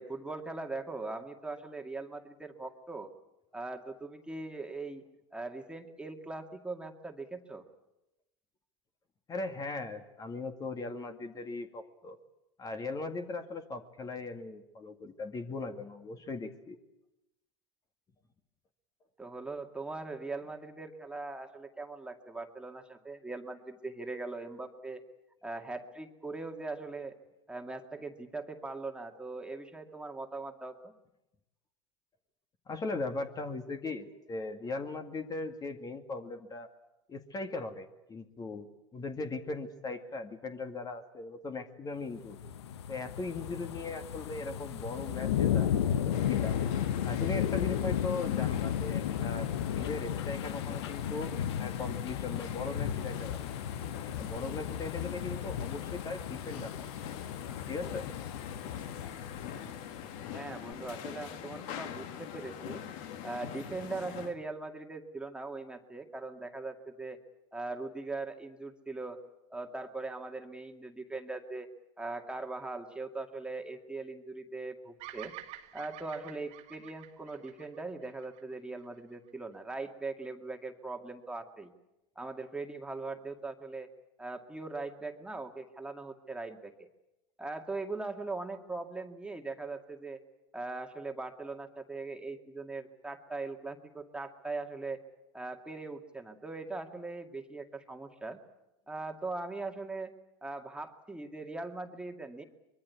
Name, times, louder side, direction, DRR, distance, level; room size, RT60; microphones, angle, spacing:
voice 1, 0.0-3.1 3.5-5.0 5.3-7.6 19.2-25.0 25.4-27.2 27.5-30.9 60.3-62.8 63.2-67.2 67.5-69.2 69.5-71.7 72.0-75.3 75.7-81.7 82.2-83.9 84.2-86.9 87.4-90.2 90.5-95.0 95.3-98.4 98.9-100.1 100.4-102.4, right 3 dB, 5° right, 3 dB, 2.1 m, -40 dB
voice 2, 9.3-12.2 12.6-16.8 32.7-36.7 37.1-42.4 42.9-45.7 46.0-46.6 47.0-49.5 49.7-53.4 54.2-56.9 57.7-58.1, left 3 dB, 25° left, 7 dB, 2.1 m, -39 dB
sound 1, 42.1-60.3 60.7-60.8, left 9 dB, 75° left, 1.0 m, -34 dB
sound 2, 46.1-64.3, left 9 dB, 55° left, 1.9 m, -44 dB
Bird vocalization bird call bird song, 75.0-79.3, right 13 dB, 50° right, 2.0 m, -49 dB
24.0 x 22.5 x 8.4 m, 0.94 s
hypercardioid pair, 90°, 14 cm